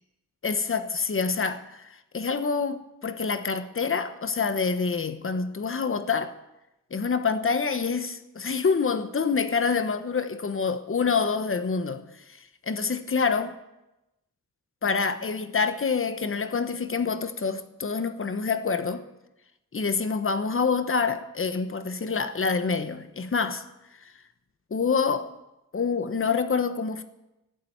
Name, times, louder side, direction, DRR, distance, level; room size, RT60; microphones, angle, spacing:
voice 1, 0.4-6.3 6.9-13.6 14.8-19.0 19.7-23.6 24.7-25.3 25.7-27.0, left 5 dB, 40° left, 1.0 m, -27 dB
16.0 x 7.6 x 8.6 m
wide cardioid pair, 140°, 32 cm